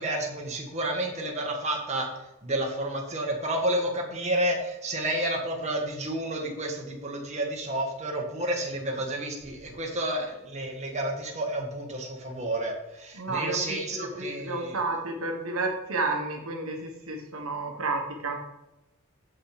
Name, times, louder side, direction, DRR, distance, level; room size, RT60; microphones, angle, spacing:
voice 1, 0.0-2.1 2.4-14.8, right 1 dB, 30° right, 0 dB, 1.6 m, -30 dB
voice 2, 13.2-18.4, right 3 dB, 65° right, 2 dB, 1.5 m, -31 dB
7.4 x 5.6 x 5.0 m, 0.95 s
head